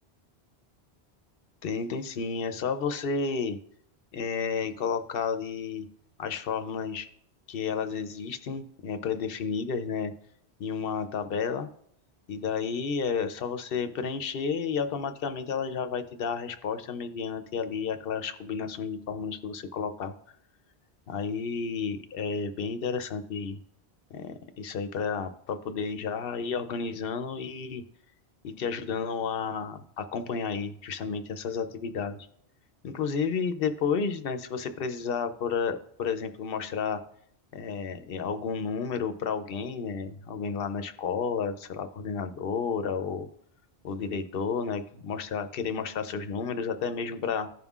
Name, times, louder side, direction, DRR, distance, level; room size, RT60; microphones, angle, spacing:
voice 1, 1.6-3.6 4.1-5.9 6.2-7.1 7.5-10.1 10.6-11.7 12.3-20.1 21.1-23.6 24.1-27.8 28.4-32.2 32.8-37.0 37.5-43.3 43.8-47.5, left 5 dB, 65° left, 9 dB, 0.8 m, -31 dB
15.5 x 5.4 x 2.4 m, 0.67 s
omnidirectional pair, 1.1 m